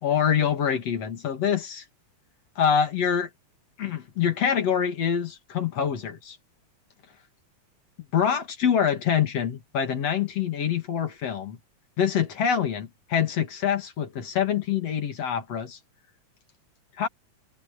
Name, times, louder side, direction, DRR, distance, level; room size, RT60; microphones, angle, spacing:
voice 1, 0.0-1.8 2.6-3.3 3.8-6.4 8.1-11.6 12.0-15.8 17.0-17.1, left 8 dB, 55° left, 3.1 m, -25 dB
omnidirectional pair, 3.7 m